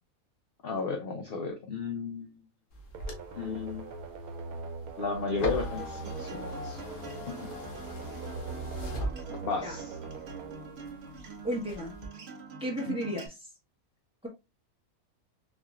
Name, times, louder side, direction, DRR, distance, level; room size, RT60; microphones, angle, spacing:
voice 1, 0.6-2.4 3.4-3.9 5.0-6.8 7.3-7.5 9.4-9.9 12.9-13.0, left 4 dB, 60° left, 0.6 m, -34 dB
sound 1, 2.7-9.8 10.2-11.2 11.6-12.1, left 1 dB, 85° left, 1.5 m, -39 dB
sound 2, 2.9-11.6, right 4 dB, 90° right, 1.2 m, -42 dB
Acoustic guitar, 5.3-13.3, right 4 dB, 55° right, 0.9 m, -46 dB
voice 2, 11.4-11.9 12.6-13.4, equal, 5° right, 1.1 m, -33 dB
4.1 x 2.9 x 2.3 m
omnidirectional pair, 1.5 m